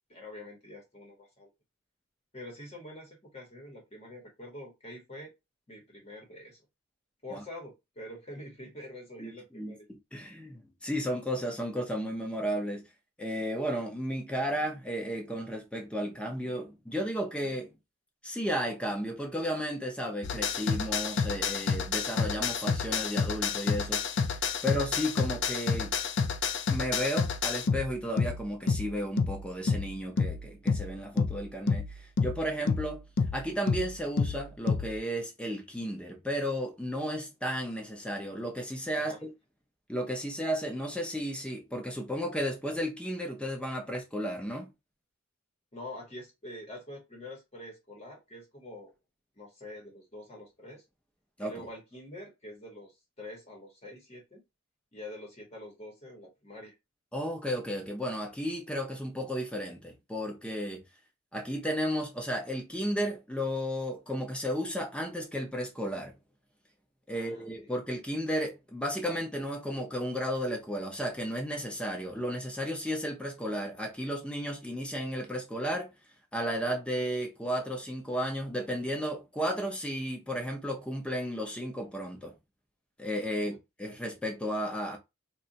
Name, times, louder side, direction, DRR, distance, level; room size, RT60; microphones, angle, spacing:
voice 1, 0.1-1.5 2.3-5.3 5.7-6.6 7.2-9.9 39.0-39.2 45.7-48.9 49.4-50.8 51.4-54.4 54.9-56.7 67.1-67.7, left 1 dB, 30° left, 0.9 m, -46 dB
voice 2, 9.2-9.7 10.1-12.8 13.2-17.8 18.2-24.2 24.6-25.9 26.7-33.0 33.3-39.3 39.9-44.7 51.4-51.6 57.1-60.8 61.3-66.1 67.1-75.9 76.3-82.3 83.0-85.0, equal, 5° left, 0.6 m, -33 dB
sound 1, 20.2-35.0, left 5 dB, 50° left, 0.4 m, -30 dB
2.6 x 2.2 x 3.9 m
head